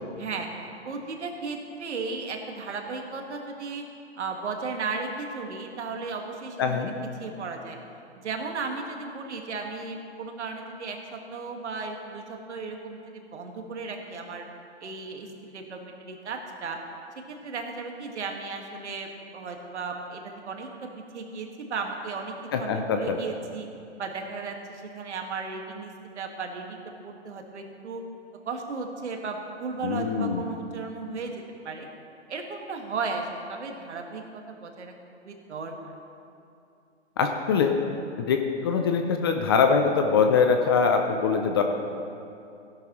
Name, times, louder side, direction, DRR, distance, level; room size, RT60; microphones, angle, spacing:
voice 1, 0.2-0.5 0.8-3.8 4.2-7.8 8.2-14.5 14.8-16.8 17.3-20.9 21.1-23.7 24.0-28.0 28.4-31.9 32.3-34.9 35.2-35.9, right 4 dB, 70° right, 3 dB, 1.8 m, -35 dB
voice 2, 6.6-6.9 22.5-23.2 29.8-30.4 37.2-37.8 38.2-41.6, left 5 dB, 20° left, 5 dB, 0.4 m, -23 dB
15.5 x 11.5 x 3.1 m, 2.6 s
hypercardioid pair, 140°, 35 cm